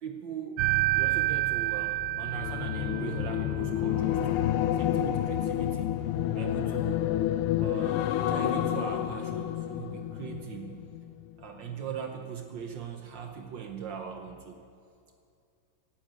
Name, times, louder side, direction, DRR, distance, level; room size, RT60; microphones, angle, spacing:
voice 1, 0.0-0.6 0.9-4.4 4.7-5.9 6.3-7.1 7.6-10.8 11.4-14.6, right 7 dB, 65° right, 4 dB, 1.5 m, -40 dB
sound 1, 0.6-3.5, right 17 dB, 80° right, 0.9 m, -28 dB
sound 2, 1.9-11.3 11.7-12.0, left 12 dB, 85° left, 1.5 m, -29 dB
sound 3, 2.6-8.9, right 4 dB, 45° left, 3.0 m, -48 dB
12.5 x 10.0 x 9.0 m, 2.5 s
omnidirectional pair, 2.4 m